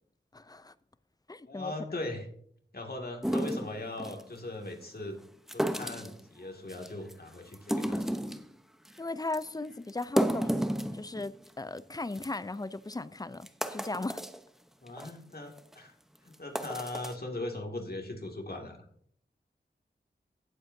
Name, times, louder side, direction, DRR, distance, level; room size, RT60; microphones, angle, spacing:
voice 1, 0.3-0.7 1.3-1.7 9.0-10.6 10.9-14.2, left 2 dB, 20° left, 0.5 m, -37 dB
voice 2, 1.4-2.3 2.7-5.2 5.5-8.2 14.8-15.9 16.2-18.8, left 2 dB, 55° left, 2.3 m, -39 dB
sound 1, 3.2-4.2 5.5-6.2 6.7-7.1 7.5-8.5 8.9-9.0 9.3-9.4 9.9-11.5 11.8-11.9 12.1-12.3 12.9-13.0 13.4-14.4 14.9-15.1 15.6-15.7 16.3-17.1, equal, ahead, 0.9 m, -32 dB
17.0 x 7.8 x 2.7 m
wide cardioid pair, 45°, 19 cm